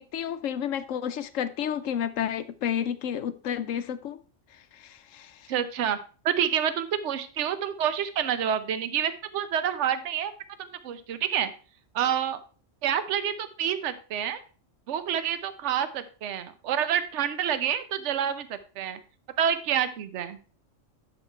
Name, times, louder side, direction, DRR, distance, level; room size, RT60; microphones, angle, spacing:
voice 1, 0.0-4.2 4.7-5.5, left 9 dB, 80° left, 1.0 m, -31 dB
voice 2, 5.5-6.0 6.2-10.3 10.6-11.5 11.9-12.4 12.8-14.4 14.9-19.0 19.4-20.4, right 9 dB, 65° right, 1.0 m, -28 dB
11.0 x 4.0 x 4.5 m
omnidirectional pair, 1.3 m